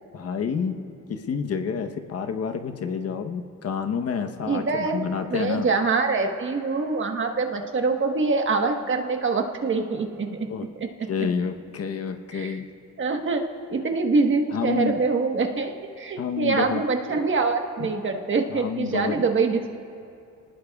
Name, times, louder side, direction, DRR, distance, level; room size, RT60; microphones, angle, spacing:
voice 1, 0.1-0.8 1.1-5.7 10.5-10.7 11.1-12.6 14.5-15.0 16.2-16.8 17.8-17.9 18.5-19.2, left 6 dB, 55° left, 6 dB, 1.0 m, -29 dB
voice 2, 4.4-5.0 5.3-10.3 10.8-11.1 12.3-12.6 13.0-13.4 13.7-19.7, right 4 dB, 40° right, 4 dB, 1.3 m, -24 dB
26.5 x 19.5 x 2.4 m, 2.5 s
cardioid pair, 90°, 30 cm